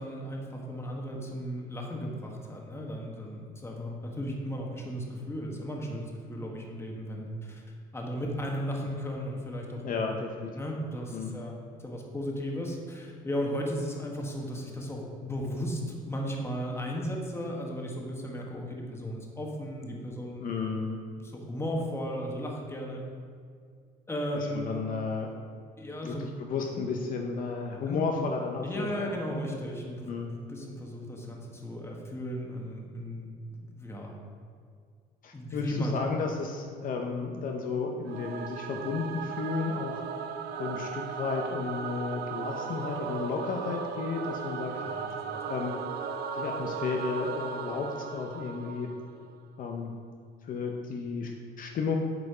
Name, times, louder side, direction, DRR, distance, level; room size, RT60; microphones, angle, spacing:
voice 1, 0.0-7.6 7.9-10.2 10.5-11.5 11.8-20.4 21.2-23.0 24.1-24.7 25.8-26.3 27.9-28.1 28.6-30.1 30.5-34.1 35.3-36.0 44.7-45.4, equal, 15° left, -1 dB, 1.4 m, -35 dB
voice 2, 9.8-10.5 11.1-11.4 20.4-21.0 24.3-25.3 26.0-29.1 30.1-30.3 35.2-40.0 40.6-44.7 45.1-45.2 45.5-45.8 46.4-48.9 49.6-49.9 50.4-52.0, left 4 dB, 55° left, 2 dB, 0.7 m, -33 dB
Singing / Musical instrument, 38.1-49.3, right 6 dB, 70° right, 0.6 m, -36 dB
8.1 x 5.0 x 4.9 m, 2.1 s
cardioid pair, 110°, 17 cm